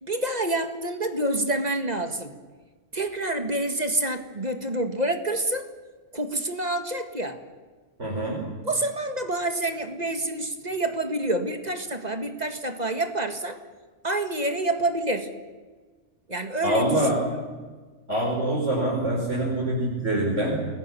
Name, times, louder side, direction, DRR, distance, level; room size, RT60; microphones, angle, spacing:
voice 1, 0.0-2.3 2.9-5.6 6.1-7.4 8.6-13.6 14.0-15.3 16.3-17.2, right 1 dB, 35° right, 7 dB, 2.1 m, -27 dB
voice 2, 8.0-8.5 16.6-17.3 18.1-20.7, right 1 dB, 90° right, -3 dB, 4.8 m, -25 dB
29.0 x 20.5 x 7.1 m, 1.4 s
omnidirectional pair, 1.2 m